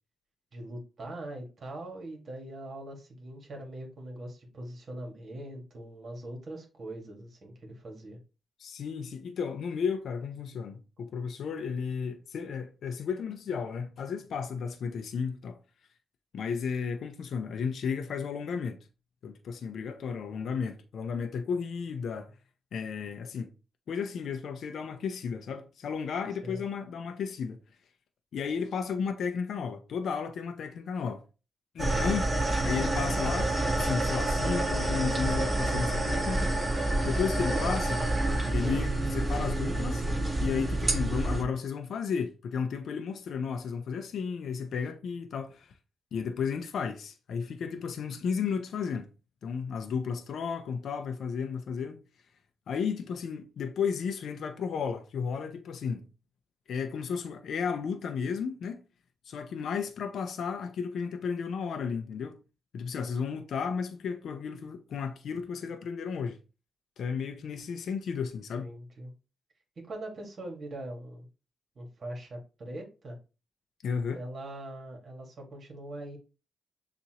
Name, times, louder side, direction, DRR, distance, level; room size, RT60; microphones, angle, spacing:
voice 1, 0.5-8.2 26.4-26.6 68.6-69.1 69.9-71.3 71.8-73.2 74.1-76.2, right 1 dB, 50° right, 1.8 m, -42 dB
voice 2, 8.6-15.6 16.3-18.9 19.2-22.3 22.7-23.5 23.9-27.6 28.3-31.2 31.7-32.3 32.6-36.5 37.0-38.1 38.5-40.1 40.4-45.7 46.1-49.1 49.4-52.0 52.7-56.1 56.7-58.8 59.3-62.4 62.7-66.4 67.0-68.7 73.8-74.2, left 6 dB, 70° left, 0.6 m, -33 dB
sound 1, 31.8-41.4, right 2 dB, 25° right, 1.6 m, -28 dB
6.9 x 2.5 x 3.0 m
cardioid pair, 85°, 0 cm